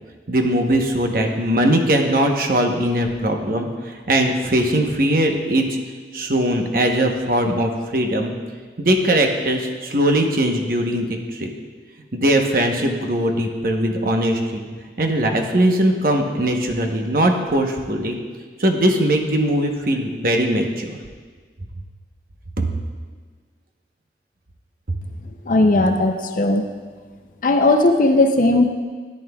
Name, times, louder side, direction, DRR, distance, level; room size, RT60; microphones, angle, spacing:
voice 1, 0.3-5.7 6.1-8.3 8.8-11.5 12.1-14.7 15.0-18.2 18.6-20.9 22.6-22.7, right 1 dB, 50° right, 3 dB, 0.9 m, -20 dB
voice 2, 25.4-26.6 27.4-28.7, left 2 dB, 45° left, 5 dB, 0.5 m, -16 dB
13.0 x 11.0 x 2.3 m, 1.5 s
head